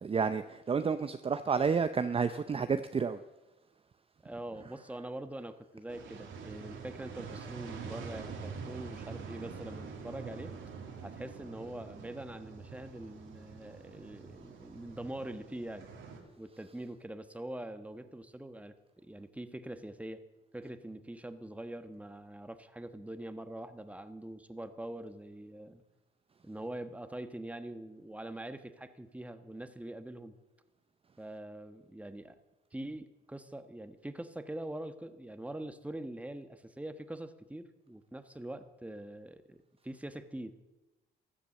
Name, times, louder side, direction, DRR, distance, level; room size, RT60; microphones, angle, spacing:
voice 1, 0.0-3.2, right 5 dB, 30° right, 0.6 m, -30 dB
voice 2, 4.2-10.5 11.0-15.9 16.4-20.2 20.5-25.8 26.4-30.4 31.2-32.4 32.7-40.5, right 1 dB, 5° right, 1.2 m, -44 dB
sound 1, 5.9-16.2, right 5 dB, 75° right, 2.5 m, -45 dB
15.0 x 11.5 x 6.8 m
cardioid pair, 90°, 20 cm